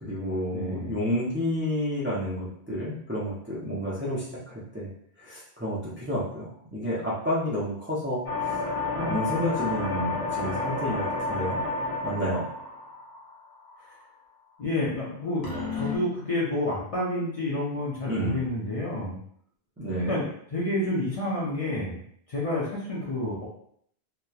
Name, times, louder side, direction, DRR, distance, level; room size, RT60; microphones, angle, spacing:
voice 1, 0.0-4.9 5.2-8.6 8.9-11.6 12.0-12.4 18.1-18.4 19.8-20.2, equal, 20° right, -7 dB, 0.3 m, -30 dB
voice 2, 0.5-0.9 14.6-19.2 20.1-20.2 20.5-21.9 22.3-23.5, left 1 dB, 45° left, -6 dB, 0.5 m, -29 dB
sound 1, 8.3-13.8 15.4-16.0, left 3 dB, 90° left, 1.1 m, -31 dB
2.9 x 2.1 x 2.3 m, 0.65 s
omnidirectional pair, 1.1 m